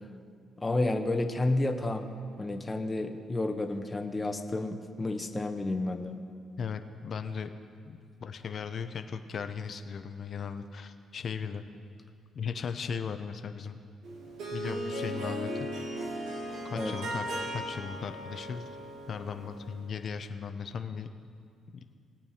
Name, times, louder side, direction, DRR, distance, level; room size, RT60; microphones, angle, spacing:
voice 1, 0.6-2.1 2.4-6.2 16.7-16.9, left 2 dB, 20° left, 5 dB, 0.8 m, -31 dB
voice 2, 6.6-7.5 8.2-11.6 12.3-13.8 14.5-15.7 16.7-17.2 17.5-18.7 19.1-21.1, left 6 dB, 55° left, 8 dB, 0.6 m, -37 dB
Harp, 14.0-19.8, equal, 80° right, 1.4 m, -37 dB
19.0 x 8.6 x 2.8 m, 2.2 s
cardioid pair, 90°, 0 cm